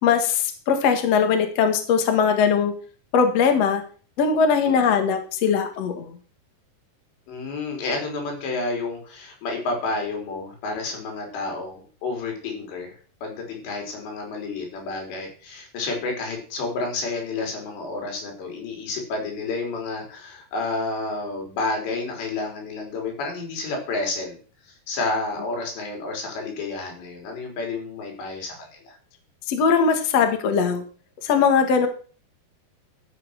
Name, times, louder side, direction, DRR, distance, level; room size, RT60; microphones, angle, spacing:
voice 1, 0.0-2.7 3.1-3.8 4.2-6.2 29.5-30.8 31.2-31.9, left 6 dB, 50° left, 6 dB, 2.2 m, -20 dB
voice 2, 7.3-12.9 13.2-24.4 24.7-29.0, left 3 dB, 80° left, 2 dB, 6.0 m, -30 dB
13.0 x 7.7 x 6.5 m, 0.41 s
omnidirectional pair, 5.0 m